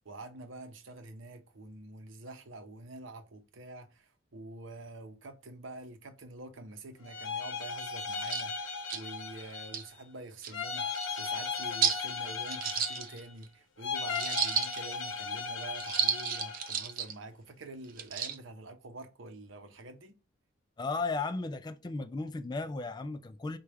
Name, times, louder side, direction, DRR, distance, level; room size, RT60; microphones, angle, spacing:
voice 1, 0.0-20.2, right 2 dB, 80° right, 0.7 m, -47 dB
sound 1, 7.0-9.9 10.5-13.3 13.8-16.8, left 5 dB, 75° left, 0.8 m, -37 dB
sound 2, 7.9-8.0 8.2-8.4 8.9-9.0 9.6-9.8 10.4-10.5 10.9-11.1 11.8-12.0 12.5-13.4 14.1-14.9 15.7-17.1 17.9-18.4, right 7 dB, 45° right, 0.5 m, -32 dB
voice 2, 20.8-23.6, left 3 dB, 20° left, 0.3 m, -35 dB
4.9 x 2.3 x 4.2 m
head